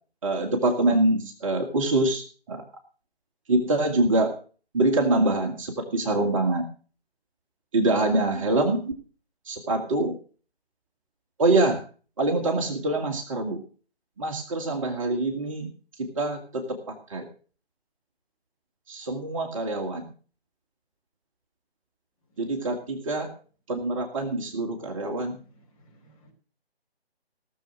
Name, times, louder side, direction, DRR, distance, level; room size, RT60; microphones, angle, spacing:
voice 1, 0.2-2.6 3.5-4.3 4.7-6.6 7.7-8.9 9.5-10.1 11.4-11.8 12.2-13.6 14.2-15.7 16.0-17.2 18.9-20.1 22.4-23.3 23.7-25.4, right 2 dB, 30° right, 4 dB, 1.8 m, -25 dB
voice 2, 25.3-26.3, right 1 dB, 35° left, 1 dB, 5.1 m, -60 dB
17.5 x 7.1 x 6.2 m, 0.39 s
figure-of-eight pair, 150°, 32 cm